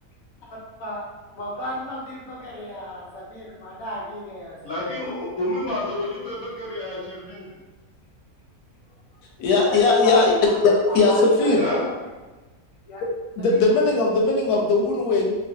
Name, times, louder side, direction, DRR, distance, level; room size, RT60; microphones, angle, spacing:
voice 1, 1.3-5.1 9.5-10.2 10.9-11.5 12.9-13.0 13.4-13.7, left 1 dB, 70° left, -3 dB, 1.2 m, -34 dB
voice 2, 4.6-7.4 11.6-11.8, left 1 dB, 20° left, -11 dB, 1.3 m, -29 dB
voice 3, 9.4-10.3 10.6-11.6 13.4-15.3, left 3 dB, 90° left, -1 dB, 1.2 m, -19 dB
3.1 x 2.4 x 2.6 m, 1.2 s
omnidirectional pair, 1.6 m